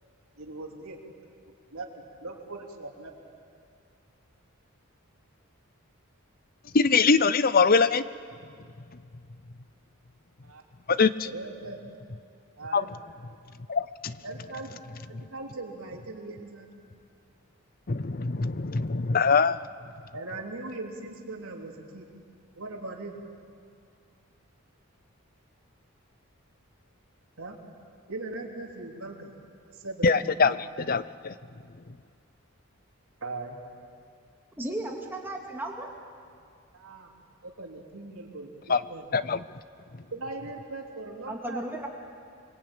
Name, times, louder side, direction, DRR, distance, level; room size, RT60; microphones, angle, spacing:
voice 1, 0.4-1.0 1.7-3.1 10.4-10.6 11.2-11.8 12.6-13.0 14.2-14.8 15.1-16.7 20.1-22.1 22.5-23.2 27.4-27.6 28.1-29.3 29.7-30.6 33.2-33.6 36.7-37.1 37.4-39.1 40.1-41.6, right 2 dB, 75° right, 0 dB, 3.3 m, -40 dB
voice 2, 6.7-8.0 10.9-11.1 12.7-12.8 13.7-14.2 17.9-19.6 30.0-31.3 38.7-38.8 39.1-39.4, left 4 dB, 40° left, 15 dB, 0.6 m, -23 dB
voice 3, 34.6-35.9 41.3-41.9, right 1 dB, 10° right, 0 dB, 2.2 m, -34 dB
29.0 x 22.0 x 8.9 m, 2.3 s
head